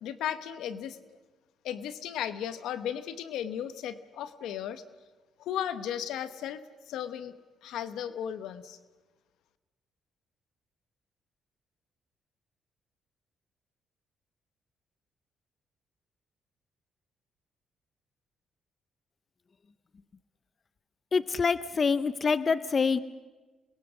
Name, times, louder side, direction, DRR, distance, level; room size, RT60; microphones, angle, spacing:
voice 1, 0.0-1.0 1.6-4.8 5.4-7.3 7.6-8.8, left 10 dB, 85° left, 13 dB, 1.1 m, -35 dB
voice 2, 21.1-23.0, left 5 dB, 40° left, 16 dB, 0.7 m, -26 dB
27.0 x 21.5 x 6.3 m, 1.3 s
cardioid pair, 90°, 0 cm